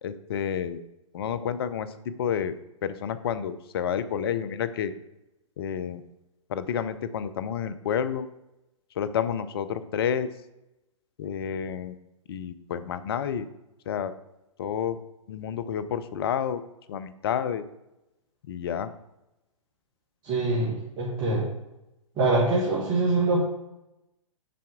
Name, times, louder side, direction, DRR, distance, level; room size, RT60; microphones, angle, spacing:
voice 1, 0.0-0.8 1.1-2.6 2.8-4.9 5.6-6.0 6.5-8.3 9.0-10.3 11.2-11.9 12.3-13.5 13.9-14.1 14.6-15.0 15.3-16.6 16.9-17.6 18.5-18.9, left 8 dB, 50° left, 13 dB, 0.6 m, -29 dB
voice 2, 20.2-21.4 22.2-23.4, right 2 dB, 25° right, -6 dB, 1.8 m, -24 dB
7.6 x 5.7 x 3.7 m, 0.92 s
figure-of-eight pair, 120°, 17 cm